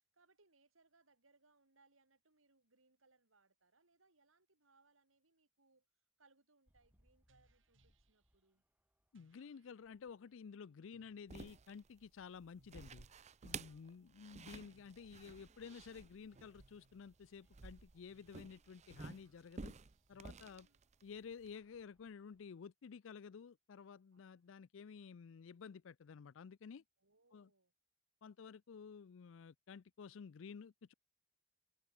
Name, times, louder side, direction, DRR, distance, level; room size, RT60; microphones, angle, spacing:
voice 1, 0.1-5.9 6.2-8.6 13.7-14.6 20.4-20.8 27.0-27.7, right 3 dB, 90° right, 4.2 m, -74 dB
sound 1, 6.7-22.5, equal, 10° right, 2.5 m, -80 dB
sound 2, 7.3-8.4 9.1-10.0 10.9-11.3 12.6-13.3 14.7-15.1 16.3-17.1 18.1-18.5 19.1-20.4 21.5-22.2 23.0-23.1 24.1-24.4 25.0-25.1, right 1 dB, 70° right, 7.6 m, -75 dB
voice 2, 9.1-13.1 13.4-19.7 20.1-20.7 21.0-26.8 27.3-27.5 28.2-30.9, left 6 dB, 70° left, 0.4 m, -53 dB
sound 3, 11.3-21.5, right 5 dB, 35° right, 0.6 m, -53 dB
head